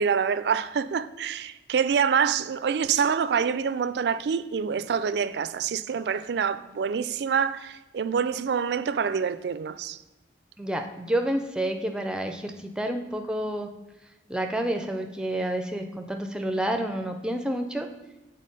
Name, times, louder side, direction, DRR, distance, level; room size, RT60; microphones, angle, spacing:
voice 1, 0.0-10.0, right 6 dB, 65° right, 0.3 m, -26 dB
voice 2, 10.6-13.7 14.3-17.9, right 1 dB, 5° right, 0.5 m, -29 dB
7.4 x 4.1 x 5.3 m
head